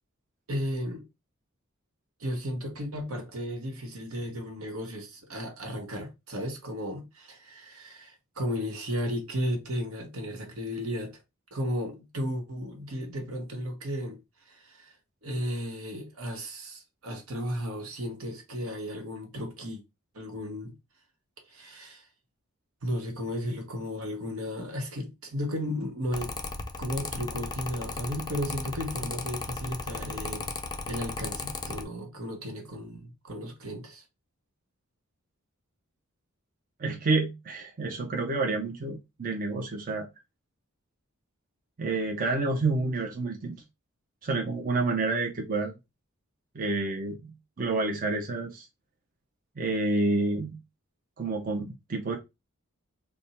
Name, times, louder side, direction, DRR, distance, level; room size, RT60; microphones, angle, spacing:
voice 1, 0.5-1.0 2.2-11.2 11.5-14.2 14.5-14.9 15.2-19.8 20.1-20.7 21.5-22.1 22.8-26.3 26.8-30.5 30.9-34.0, equal, 80° right, 1.2 m, -34 dB
Mechanical fan, 26.1-31.8, left 3 dB, 20° left, 0.4 m, -36 dB
voice 2, 36.8-40.1 41.8-43.6 44.2-45.8 46.5-48.6 49.6-50.6 51.2-52.2, right 3 dB, 40° right, 0.6 m, -29 dB
3.4 x 2.1 x 4.1 m
head